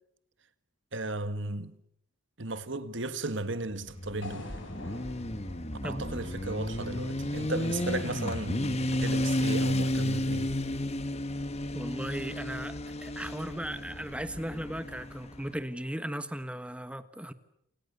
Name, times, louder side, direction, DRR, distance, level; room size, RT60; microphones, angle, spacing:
voice 1, 0.9-1.7 2.4-4.5 5.8-10.5, right 2 dB, 55° right, 1.7 m, -35 dB
Motorcycle, 3.8-15.5, left 1 dB, 30° left, 1.4 m, -32 dB
sound 1, 4.2-8.3, left 2 dB, 60° left, 5.5 m, -48 dB
voice 2, 11.7-17.3, right 1 dB, 5° right, 1.4 m, -37 dB
29.0 x 27.5 x 6.9 m
head